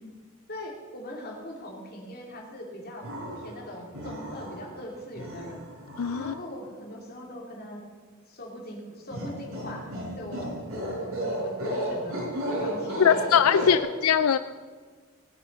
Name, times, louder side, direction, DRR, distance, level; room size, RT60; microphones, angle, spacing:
voice 1, 0.5-3.1 3.3-5.6 6.2-7.8 8.3-10.5 10.9-13.8, equal, 45° left, 0 dB, 3.0 m, -41 dB
sound 1, 3.0-3.6 3.9-4.7 5.2-6.3 9.1-13.8, equal, 80° right, 4.9 m, -33 dB
voice 2, 6.0-6.3 13.0-14.4, left 8 dB, 85° left, 12 dB, 0.4 m, -21 dB
18.5 x 7.5 x 6.7 m, 1.5 s
head